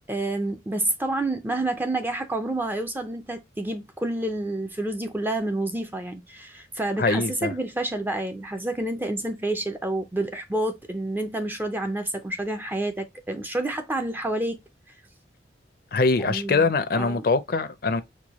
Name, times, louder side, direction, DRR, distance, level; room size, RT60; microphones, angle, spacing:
voice 1, 0.1-14.6 16.2-16.7 17.0-17.2, right 1 dB, 10° right, 0.5 m, -29 dB
voice 2, 7.0-7.5 15.9-18.0, left 3 dB, 55° left, 0.5 m, -23 dB
4.6 x 2.2 x 2.9 m
head